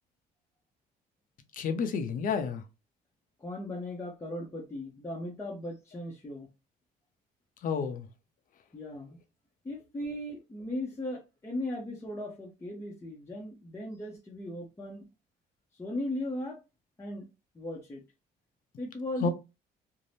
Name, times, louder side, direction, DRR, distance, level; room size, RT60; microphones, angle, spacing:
voice 1, 1.5-2.6 7.6-8.1 19.2-19.3, left 5 dB, 55° left, 0.6 m, -30 dB
voice 2, 3.4-6.5 8.7-9.2 9.6-15.1 15.7-16.6 17.0-17.3 17.5-18.0 18.8-19.3, left 1 dB, 15° left, 0.6 m, -37 dB
2.6 x 2.1 x 3.3 m
cardioid pair, 110°, 17 cm